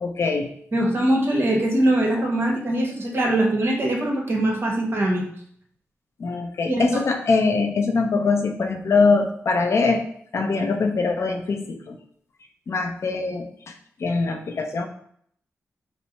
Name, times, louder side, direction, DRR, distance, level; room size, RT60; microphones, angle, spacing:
voice 1, 0.0-0.5 3.3-3.4 6.2-10.0 10.3-12.0 12.7-13.7 14.0-14.9, left 4 dB, 65° left, 5 dB, 0.5 m, -23 dB
voice 2, 0.7-5.2 6.7-6.9, right 1 dB, 50° right, 0 dB, 1.1 m, -22 dB
4.2 x 2.0 x 4.4 m, 0.65 s
cardioid pair, 60°, 5 cm